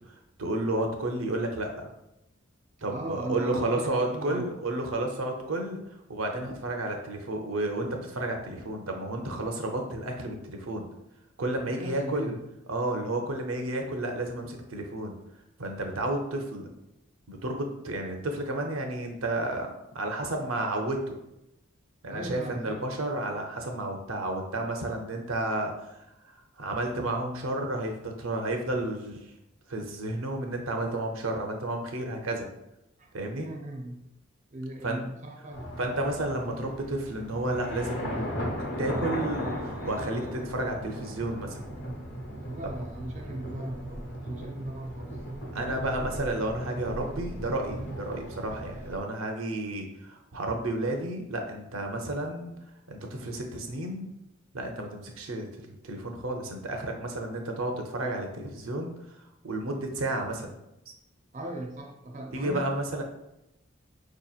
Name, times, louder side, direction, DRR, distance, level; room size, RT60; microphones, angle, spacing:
voice 1, 0.4-1.9 2.8-5.8 6.1-10.9 11.4-12.3 12.7-15.1 15.6-16.7 17.3-21.2 22.0-26.0 26.6-29.2 29.7-32.5 33.1-33.5 34.8-35.1 35.8-38.3 38.8-41.6 45.5-52.5 52.9-54.1 54.5-58.9 59.4-60.5 62.3-63.0, right 1 dB, 85° right, 3 dB, 0.7 m, -31 dB
voice 2, 2.9-4.5 11.6-12.4 22.1-22.8 33.0-33.1 33.3-34.1 34.5-35.8 42.4-45.1 61.3-62.7, right 1 dB, 35° right, 1 dB, 0.5 m, -38 dB
sound 1, 35.5-49.0, equal, 60° left, 1.0 m, -36 dB
4.7 x 2.9 x 2.4 m, 0.87 s
head